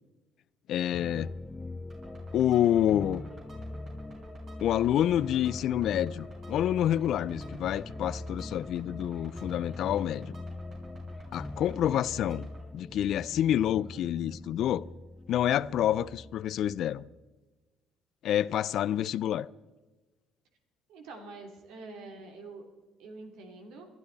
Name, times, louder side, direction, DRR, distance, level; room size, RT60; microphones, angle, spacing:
voice 1, 0.7-1.3 2.3-3.2 4.6-10.3 11.3-12.5 12.7-14.9 15.3-17.1 18.2-19.5, left 11 dB, 65° left, 0.4 m, -28 dB
sound 1, 0.9-17.2, left 2 dB, 15° left, 0.5 m, -42 dB
sound 2, 1.9-12.6, right 2 dB, 40° right, 5.5 m, -51 dB
voice 2, 20.9-22.7 23.0-23.9, right 3 dB, 80° right, 3.0 m, -46 dB
21.5 x 12.0 x 4.1 m
cardioid pair, 110°, 0 cm